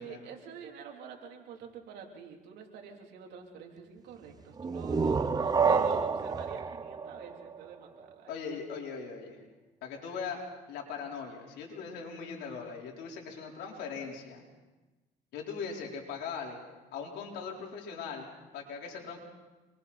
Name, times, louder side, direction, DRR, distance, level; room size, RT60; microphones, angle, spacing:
voice 1, 0.0-8.3, right 6 dB, 80° right, 1 dB, 3.5 m, -46 dB
sound 1, 4.6-8.1, right 5 dB, 25° right, 0.7 m, -29 dB
voice 2, 8.3-9.4 9.8-10.4 10.7-14.4 15.3-16.6 16.9-19.2, left 5 dB, 85° left, -1 dB, 4.5 m, -40 dB
27.5 x 23.0 x 4.4 m, 1.2 s
cardioid pair, 110°, 17 cm